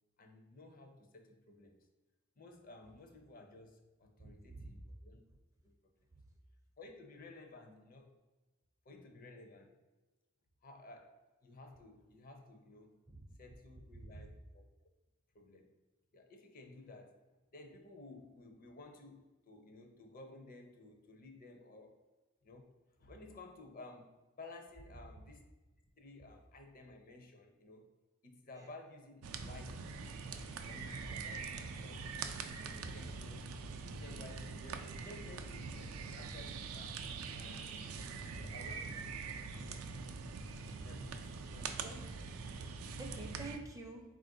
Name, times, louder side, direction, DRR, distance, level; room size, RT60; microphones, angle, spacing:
voice 1, 0.2-1.9 2.4-5.2 5.6-5.9 6.8-8.2 8.8-9.8 10.6-11.2 11.4-12.9 13.4-14.6 15.3-15.7 16.1-17.2 17.5-22.0 22.4-25.4 26.0-27.9 28.2-29.9 30.3-32.2 32.6-33.5 33.8-37.0 37.3-38.1 38.4-39.3 39.7-40.0 40.8-41.8, left 2 dB, 40° left, 4 dB, 0.5 m, -55 dB
voice 2, 4.2-4.7 6.1-6.2 13.1-13.2 14.1-14.3 28.6-28.7 41.8-42.1 42.6-44.0, right 2 dB, 15° right, 2 dB, 0.4 m, -49 dB
sound 1, 29.2-43.6, right 4 dB, 85° right, 0.4 m, -44 dB
4.0 x 2.5 x 3.7 m, 1.2 s
head